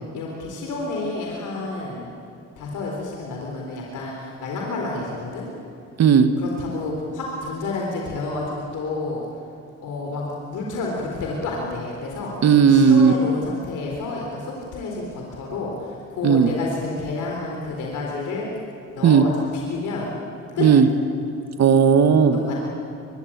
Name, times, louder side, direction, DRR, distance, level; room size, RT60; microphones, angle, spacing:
voice 1, 0.1-2.1 2.6-5.5 6.4-9.2 9.8-12.4 12.7-18.5 18.9-20.1 20.6-20.7 22.3-22.6, left 3 dB, 80° left, -1 dB, 4.0 m, -30 dB
voice 2, 6.0-6.3 12.4-13.1 16.2-16.5 19.0-19.2 20.6-20.9 21.6-22.4, right 7 dB, 60° right, 9 dB, 1.6 m, -15 dB
23.0 x 23.0 x 8.7 m, 2.7 s
cardioid pair, 90°, 30 cm